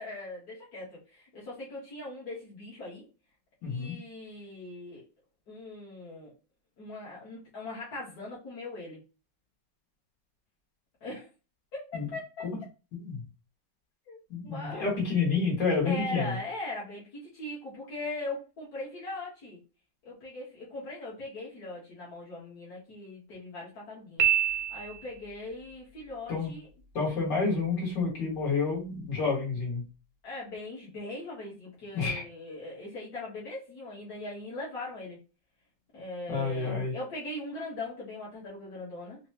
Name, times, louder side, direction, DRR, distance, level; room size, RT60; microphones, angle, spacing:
voice 1, 0.0-3.1 3.6-5.0 5.5-6.3 6.8-9.0 11.0-11.3 11.7-12.5 14.1-14.2 14.4-14.9 15.8-19.6 20.0-26.7 30.2-35.2 35.9-39.2, left 2 dB, 65° left, -7 dB, 2.0 m, -40 dB
voice 2, 3.6-3.9 11.9-12.1 12.5-12.6 13.0-13.2 14.3-16.3 26.3-26.5 26.9-29.8 31.9-32.2 36.3-36.9, left 4 dB, 80° left, -5 dB, 2.6 m, -29 dB
Piano, 24.2-25.3, right 9 dB, 70° right, 0.9 m, -26 dB
5.1 x 2.3 x 2.9 m, 0.31 s
omnidirectional pair, 1.9 m